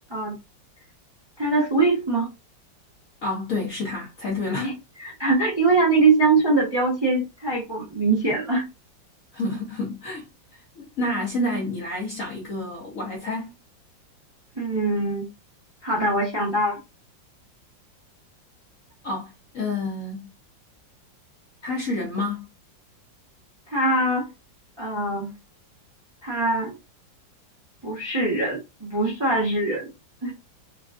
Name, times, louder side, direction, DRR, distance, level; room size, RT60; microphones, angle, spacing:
voice 1, 1.4-2.3 4.6-4.7 5.0-8.7 14.6-15.3 15.8-16.8 23.7-24.3 24.8-25.4 26.2-26.8 27.8-29.9 30.2-30.3, right 3 dB, 20° right, 0.7 m, -22 dB
voice 2, 3.2-4.7 9.3-10.3 10.8-13.5 19.0-20.3 21.6-22.5, left 2 dB, 60° left, 0.9 m, -29 dB
3.3 x 2.3 x 2.4 m
omnidirectional pair, 2.0 m